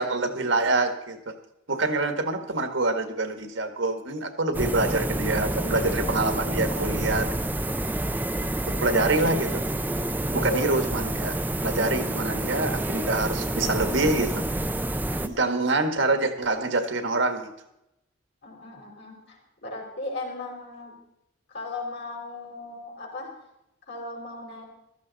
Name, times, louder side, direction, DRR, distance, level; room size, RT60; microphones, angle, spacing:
voice 1, 0.0-1.3 1.7-7.3 8.7-9.6 10.3-11.4 11.6-14.5 15.2-17.5, right 2 dB, 65° right, 7 dB, 1.6 m, -26 dB
sound 1, 4.5-15.3, right 1 dB, 10° right, 0.5 m, -28 dB
voice 2, 10.4-10.8 15.3-15.5 18.4-20.9 21.5-23.3 23.9-24.6, left 2 dB, 55° left, 0 dB, 4.8 m, -36 dB
15.5 x 13.5 x 4.1 m, 0.85 s
head